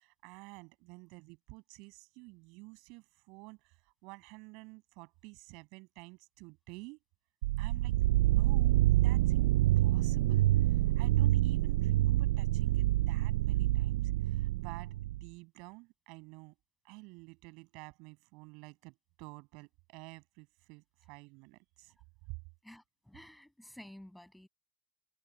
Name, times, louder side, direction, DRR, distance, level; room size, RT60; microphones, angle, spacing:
voice 1, 0.0-7.0 7.6-16.5 16.8-22.0, right 28 dB, 55° right, 6.6 m, -51 dB
sound 1, 7.4-15.2, right 16 dB, 85° right, 0.3 m, -27 dB
voice 2, 22.6-24.5, left 1 dB, ahead, 7.8 m, -52 dB
supercardioid pair, 150°, 0 cm